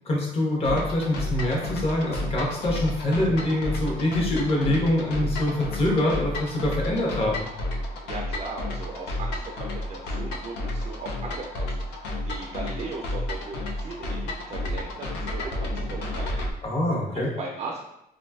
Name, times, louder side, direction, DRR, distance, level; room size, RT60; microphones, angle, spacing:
voice 1, 0.0-7.4 16.6-17.3, left 1 dB, 35° left, -2 dB, 0.8 m, -25 dB
sound 1, 0.6-16.5, left 1 dB, 85° left, 0.4 m, -31 dB
voice 2, 8.0-11.7 12.2-16.4 17.1-17.8, right 3 dB, 40° right, -1 dB, 0.4 m, -37 dB
2.6 x 2.3 x 2.3 m, 0.84 s
cardioid pair, 110°, 17 cm